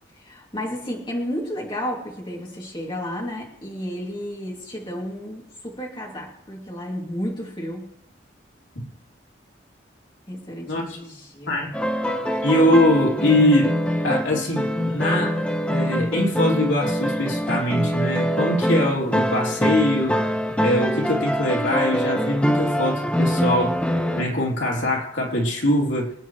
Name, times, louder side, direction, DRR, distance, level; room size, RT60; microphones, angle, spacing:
voice 1, 0.1-7.9 10.3-11.8, equal, 25° left, -2 dB, 2.7 m, -32 dB
voice 2, 10.7-11.0 11.5-11.8 12.4-13.8 14.0-20.2 20.6-23.8 24.1-26.1, left 1 dB, 85° left, -1 dB, 3.1 m, -22 dB
sound 1, 11.7-24.2, equal, 5° left, 1.1 m, -24 dB
26.0 x 9.2 x 3.2 m, 0.79 s
head